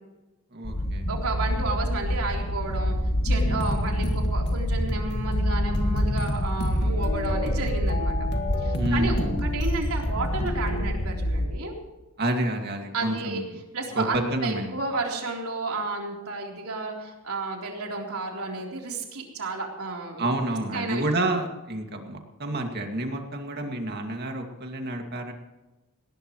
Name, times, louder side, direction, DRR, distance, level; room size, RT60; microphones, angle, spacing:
voice 1, 0.5-1.1 3.7-3.9 8.8-9.5 12.2-13.6 13.9-14.8 20.2-25.3, right 1 dB, 45° right, 4 dB, 2.2 m, -29 dB
sound 1, 0.6-11.5, equal, 80° left, 1.7 m, -27 dB
voice 2, 1.1-3.0 3.2-8.2 8.6-11.7 12.9-13.4 13.7-20.4 20.7-21.0, right 3 dB, 75° right, 0 dB, 3.7 m, -32 dB
sound 2, 3.2-10.8, left 1 dB, 50° left, 2.0 m, -32 dB
19.5 x 18.5 x 3.2 m, 1.1 s
head